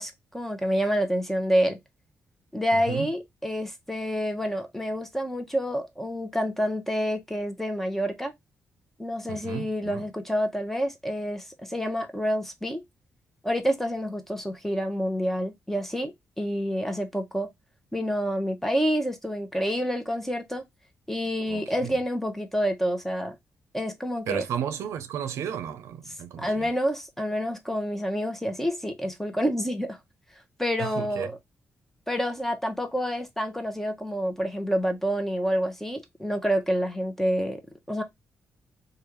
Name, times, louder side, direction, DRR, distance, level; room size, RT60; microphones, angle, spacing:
voice 1, 0.0-1.8 2.5-8.3 9.0-12.8 13.4-17.5 17.9-20.6 21.1-23.4 23.7-24.5 26.4-30.0 30.6-31.3 32.1-37.6 37.9-38.0, equal, 5° left, 0.9 m, -28 dB
voice 2, 2.7-3.1 9.3-10.1 21.5-21.9 24.3-26.7 30.8-31.3, right 9 dB, 85° right, 0.5 m, -34 dB
3.2 x 2.4 x 3.0 m
cardioid pair, 75°, 5 cm